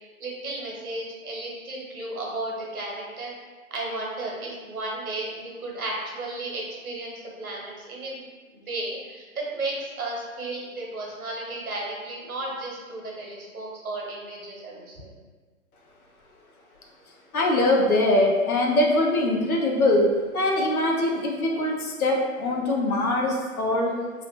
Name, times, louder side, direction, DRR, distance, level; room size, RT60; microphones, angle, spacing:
voice 1, 0.2-3.3 3.7-8.2 8.5-15.1, right 2 dB, 80° right, -3 dB, 1.1 m, -34 dB
voice 2, 17.3-23.9, left 1 dB, 80° left, 0 dB, 0.8 m, -22 dB
2.8 x 2.1 x 3.1 m, 1.4 s
hypercardioid pair, 140°, 42 cm